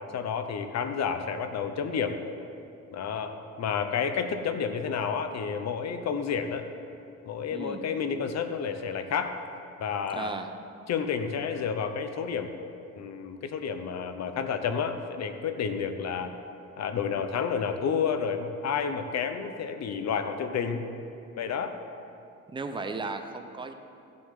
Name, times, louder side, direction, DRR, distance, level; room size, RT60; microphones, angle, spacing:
voice 1, 0.1-2.2 2.9-6.7 7.3-9.4 9.8-10.3 10.9-12.5 12.9-16.3 16.8-20.9 21.4-21.7, left 6 dB, 60° left, 8 dB, 0.9 m, -30 dB
voice 2, 7.5-7.9 10.1-10.5 22.5-23.7, right 3 dB, 15° right, 6 dB, 0.7 m, -35 dB
15.0 x 7.7 x 3.7 m, 2.7 s
cardioid pair, 90°, 30 cm